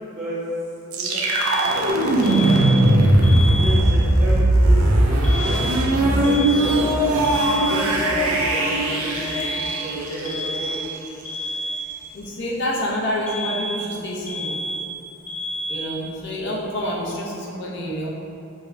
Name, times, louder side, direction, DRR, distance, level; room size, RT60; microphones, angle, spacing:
voice 1, 0.1-0.5 0.8-3.1 3.4-4.9 5.3-10.8, equal, 35° right, -10 dB, 0.7 m, -32 dB
sound 1, 0.9-10.8, right 1 dB, 75° right, 0.4 m, -19 dB
Alarm, 1.2-4.2 5.2-8.2 9.2-12.2 13.3-16.2, equal, 5° left, 0.3 m, -30 dB
voice 2, 12.1-14.6 15.7-18.1, equal, 55° left, -4 dB, 0.6 m, -27 dB
4.7 x 2.1 x 2.6 m, 2.7 s
head